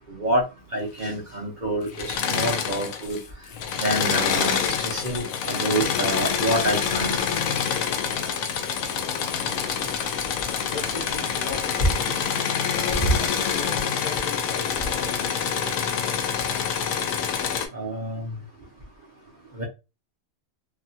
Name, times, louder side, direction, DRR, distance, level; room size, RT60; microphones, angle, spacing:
voice 1, 0.1-0.4 0.7-3.2 3.8-7.1 17.7-18.2 19.6-19.7, right 1 dB, 40° right, 0.8 m, -27 dB
Engine / Mechanisms, 1.9-3.2 3.5-17.7, left 7 dB, 80° left, 1.0 m, -26 dB
voice 2, 10.7-12.0 12.7-16.4, left 3 dB, 45° left, 0.7 m, -38 dB
2.8 x 2.3 x 2.7 m
omnidirectional pair, 1.4 m